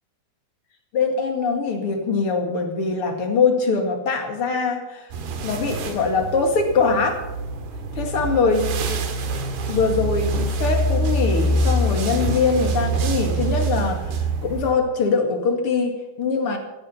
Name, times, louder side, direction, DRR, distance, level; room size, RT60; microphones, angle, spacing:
voice 1, 0.9-5.1 5.4-7.2 7.9-9.0 9.7-14.2 14.4-16.6, left 4 dB, 40° left, 3 dB, 2.3 m, -22 dB
sound 1, 5.1-14.7, right 2 dB, 65° right, 3.6 m, -25 dB
15.5 x 13.5 x 5.7 m, 1.0 s
omnidirectional pair, 5.0 m